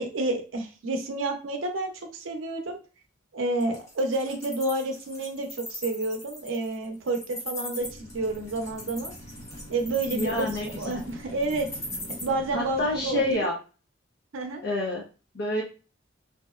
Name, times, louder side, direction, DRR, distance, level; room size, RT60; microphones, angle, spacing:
voice 1, 0.0-2.8 3.3-9.1 9.7-10.5 10.8-11.7 12.2-13.5 14.3-14.6, right 2 dB, 90° right, 4 dB, 0.6 m, -29 dB
Wild animals, 3.6-12.2, left 1 dB, 15° left, 0.7 m, -39 dB
sound 1, 7.8-13.4, equal, 80° left, 1.0 m, -44 dB
voice 2, 10.1-11.0 12.5-13.5 14.6-15.0 15.3-15.6, left 1 dB, 55° left, -3 dB, 0.6 m, -28 dB
2.7 x 2.0 x 2.3 m, 0.34 s
head